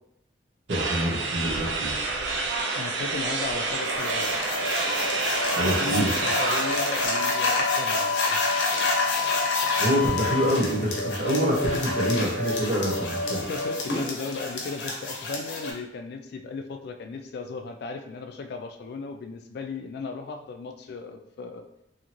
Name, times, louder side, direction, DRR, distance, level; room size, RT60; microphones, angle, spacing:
voice 1, 0.7-2.0 5.5-6.1 9.8-13.4, equal, 50° right, -4 dB, 1.0 m, -26 dB
sound 1, 0.7-7.1, right 3 dB, 85° right, 0.4 m, -28 dB
voice 2, 2.7-4.4 5.5-8.4 13.2-21.6, left 4 dB, 65° left, 6 dB, 0.3 m, -36 dB
sound 2, 3.8-15.7, left 2 dB, 85° left, 0.7 m, -28 dB
Wind instrument woodwind instrument, 7.1-10.7, left 11 dB, 15° left, 0.7 m, -30 dB
2.7 x 2.5 x 2.9 m, 0.80 s
head